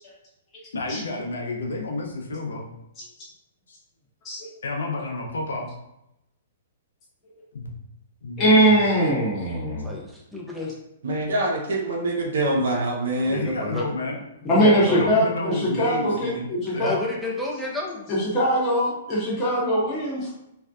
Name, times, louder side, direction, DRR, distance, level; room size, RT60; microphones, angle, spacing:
voice 1, 0.7-2.7 3.7-3.8 4.6-5.7 7.5-7.7 8.2-8.8 13.3-14.2 14.9-17.0, left 2 dB, 85° left, 1 dB, 0.6 m, -30 dB
voice 2, 8.4-9.9 14.4-16.9 18.1-20.3, right 1 dB, 30° left, -6 dB, 0.8 m, -21 dB
voice 3, 9.8-10.7 13.1-13.9 14.5-15.1 16.8-18.1, left 2 dB, ahead, -4 dB, 0.5 m, -31 dB
voice 4, 11.0-13.4, right 1 dB, 75° right, -1 dB, 0.5 m, -24 dB
2.6 x 2.1 x 2.2 m, 0.84 s
hypercardioid pair, 130°, 0 cm